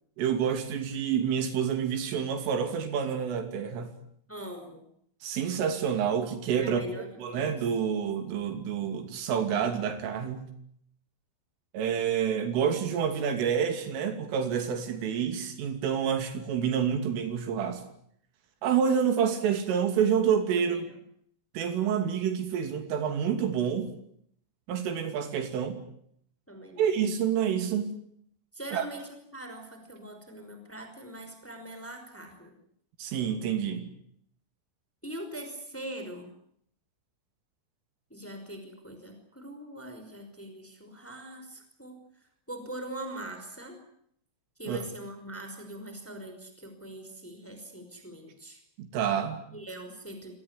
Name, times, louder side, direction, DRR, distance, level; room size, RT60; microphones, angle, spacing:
voice 1, 0.2-3.9 5.2-6.8 7.2-10.5 11.7-17.8 18.6-20.9 21.6-23.9 24.7-25.8 26.8-27.9 28.7-28.9 33.0-33.9 44.7-44.8 48.8-49.4, right 7 dB, 80° right, 8 dB, 5.3 m, -28 dB
voice 2, 4.3-4.9 6.6-7.6 20.7-20.8 26.5-26.8 28.5-32.6 35.0-36.3 38.1-42.0 42.5-43.8 44.6-48.6 49.5-50.3, right 1 dB, 5° left, 6 dB, 4.6 m, -42 dB
25.0 x 18.5 x 9.8 m, 0.69 s
omnidirectional pair, 5.8 m